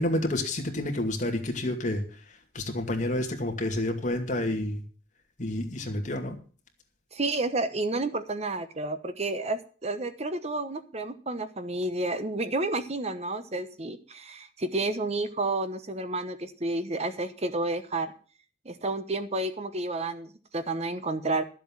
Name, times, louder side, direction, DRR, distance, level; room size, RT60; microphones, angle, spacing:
voice 1, 0.0-2.2 2.5-4.8 5.4-6.4, left 1 dB, 45° left, 4 dB, 2.4 m, -29 dB
voice 2, 7.1-18.1 18.6-21.4, right 2 dB, 40° right, 10 dB, 1.1 m, -30 dB
13.0 x 7.5 x 7.2 m, 0.39 s
head